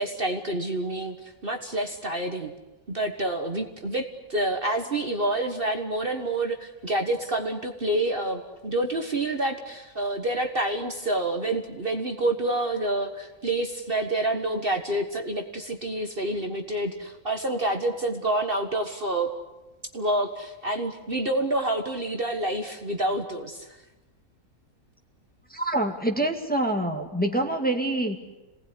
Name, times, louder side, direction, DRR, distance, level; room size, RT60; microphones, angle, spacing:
voice 1, 0.0-2.5 2.9-19.3 19.9-23.8, right 1 dB, 40° right, 4 dB, 1.7 m, -28 dB
voice 2, 25.5-28.2, right 1 dB, 5° left, 2 dB, 2.0 m, -26 dB
27.5 x 19.0 x 9.9 m, 1.1 s
omnidirectional pair, 1.6 m